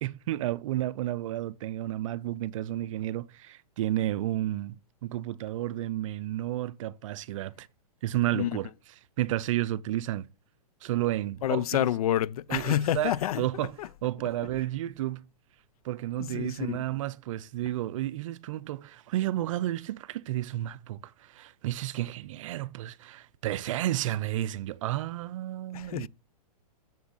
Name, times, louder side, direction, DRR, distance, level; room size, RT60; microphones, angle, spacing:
voice 1, 0.0-7.7 8.0-8.7 9.2-10.3 10.8-11.6 12.5-13.7 14.0-15.3 15.8-26.1, right 14 dB, 55° right, 0.5 m, -31 dB
voice 2, 11.4-13.5 13.8-13.9 16.2-16.9 25.7-26.1, left 12 dB, 65° left, 0.4 m, -28 dB
7.0 x 5.8 x 4.1 m
hypercardioid pair, 130°, 20 cm